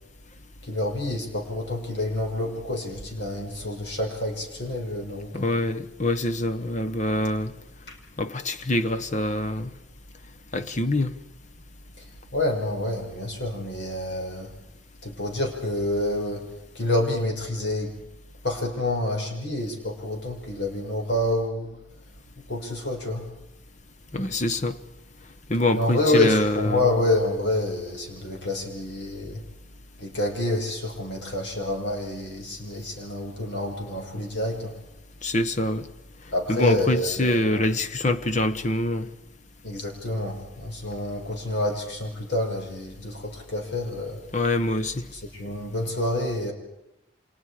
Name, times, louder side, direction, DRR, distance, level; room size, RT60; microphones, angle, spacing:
voice 1, 0.6-5.5 7.9-8.0 12.3-14.5 15.0-16.5 16.7-18.0 18.4-21.7 22.5-23.3 25.7-29.4 30.0-34.7 36.3-37.7 39.6-44.2 45.1-46.5, left 1 dB, 60° left, 5.8 m, -28 dB
voice 2, 5.3-7.5 8.2-9.7 10.5-11.2 24.1-24.8 25.5-26.8 35.2-35.9 36.5-39.1 44.3-45.1, left 1 dB, 35° left, 1.1 m, -25 dB
29.5 x 27.0 x 4.9 m
head